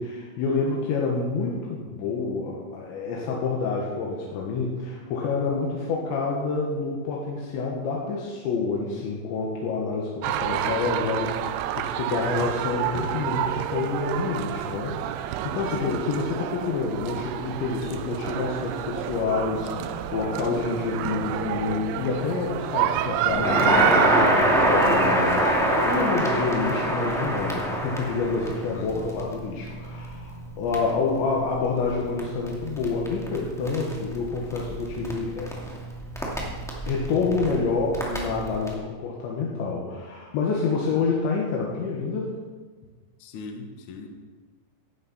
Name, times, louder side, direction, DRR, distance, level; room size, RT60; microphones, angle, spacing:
voice 1, 0.0-35.5 36.9-42.3, left 4 dB, 75° left, -3 dB, 3.8 m, -28 dB
sound 1, 10.2-26.1, right 12 dB, 85° right, 2.3 m, -29 dB
sound 2, 19.5-36.0, left 6 dB, 30° right, 1.6 m, -46 dB
Crackle, 23.3-38.7, equal, 5° left, 0.5 m, -26 dB
voice 2, 28.7-29.2 43.2-44.1, left 4 dB, 60° left, 3 dB, 2.1 m, -39 dB
16.0 x 12.0 x 4.3 m, 1.4 s
omnidirectional pair, 5.3 m